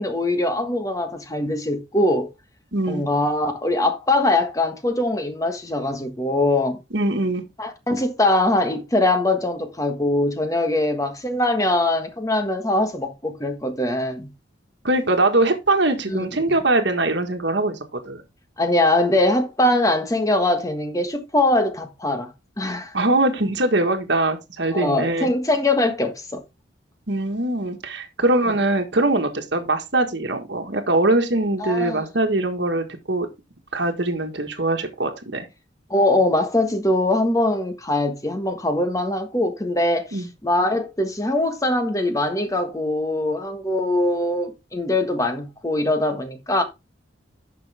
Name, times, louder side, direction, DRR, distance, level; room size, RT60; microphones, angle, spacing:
voice 1, 0.0-2.3 2.9-6.8 7.6-14.3 16.1-16.3 18.6-22.3 22.6-22.9 24.7-26.4 31.6-32.0 35.9-46.6, left 1 dB, 15° left, 1.5 m, -22 dB
voice 2, 2.7-3.0 6.9-7.4 14.8-18.2 22.9-25.3 27.1-33.3 33.7-35.5 40.1-40.3, right 2 dB, 65° right, 1.6 m, -22 dB
10.0 x 6.1 x 3.5 m
head